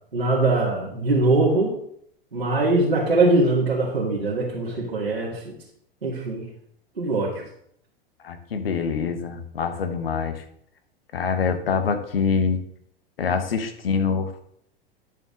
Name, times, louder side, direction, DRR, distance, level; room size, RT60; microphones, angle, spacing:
voice 1, 0.1-1.8 2.3-5.5 6.0-6.5 7.0-7.4, right 2 dB, 85° right, -6 dB, 2.3 m, -22 dB
voice 2, 8.2-10.4 11.1-12.6 13.2-14.5, left 5 dB, 70° left, 8 dB, 1.3 m, -25 dB
10.5 x 6.9 x 3.9 m, 0.68 s
figure-of-eight pair, 90°, 30 cm